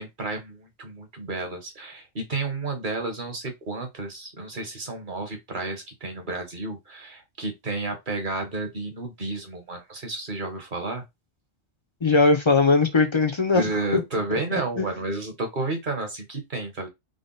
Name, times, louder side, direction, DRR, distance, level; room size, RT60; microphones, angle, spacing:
voice 1, 0.0-11.0 13.5-16.9, right 2 dB, 45° right, 1.0 m, -31 dB
voice 2, 12.0-14.0 14.8-14.9, left 4 dB, 45° left, 0.4 m, -20 dB
3.8 x 2.1 x 3.8 m
omnidirectional pair, 1.3 m